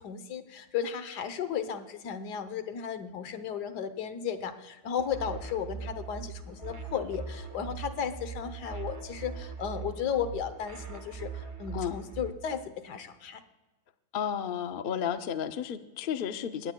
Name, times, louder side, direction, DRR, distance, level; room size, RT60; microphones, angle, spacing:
voice 1, 0.0-13.4, left 8 dB, 85° left, 10 dB, 1.5 m, -35 dB
sound 1, 5.0-12.3, right 6 dB, 35° right, 0.5 m, -41 dB
voice 2, 14.1-16.7, left 8 dB, 65° left, 9 dB, 0.5 m, -32 dB
21.0 x 17.0 x 2.3 m, 1.2 s
omnidirectional pair, 1.7 m